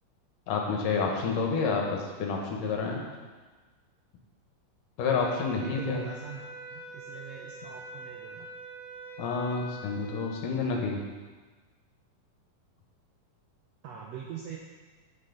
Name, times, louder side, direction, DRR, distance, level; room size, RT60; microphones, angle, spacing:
voice 1, 0.5-3.0 5.0-6.0 9.2-11.0, left 4 dB, 75° left, 0 dB, 2.6 m, -29 dB
sound 1, 5.1-10.3, right 2 dB, 60° right, 3.0 m, -44 dB
voice 2, 5.4-8.5 13.8-14.6, right 7 dB, 80° right, -2 dB, 1.5 m, -43 dB
9.0 x 6.4 x 3.9 m, 1.3 s
omnidirectional pair, 3.9 m